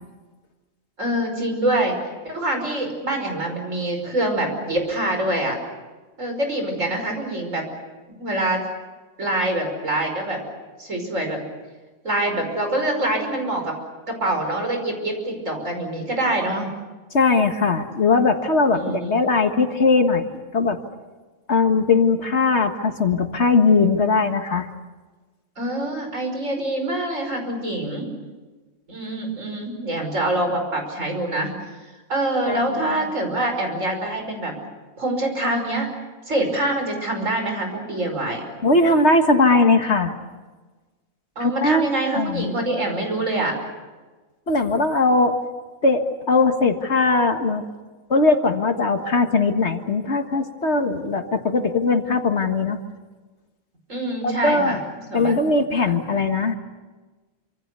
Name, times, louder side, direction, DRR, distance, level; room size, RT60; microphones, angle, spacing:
voice 1, 1.0-2.0 2.2-5.6 6.2-7.7 8.2-8.6 9.2-10.4 10.8-11.4 12.0-13.7 14.1-16.7 18.7-19.2 25.6-28.1 28.9-31.5 31.8-34.5 35.0-35.9 36.3-38.4 41.4-43.6 53.9-54.9 55.1-55.3 55.9-56.2, right 1 dB, 65° right, 3 dB, 5.8 m, -25 dB
voice 2, 17.1-20.3 20.5-20.8 21.5-24.7 32.5-32.8 38.6-40.1 41.4-42.5 44.5-45.4 45.8-47.6 48.1-52.8 54.2-54.8 55.1-56.6, left 3 dB, 55° left, 6 dB, 1.9 m, -19 dB
27.0 x 26.0 x 6.8 m, 1.3 s
omnidirectional pair, 1.4 m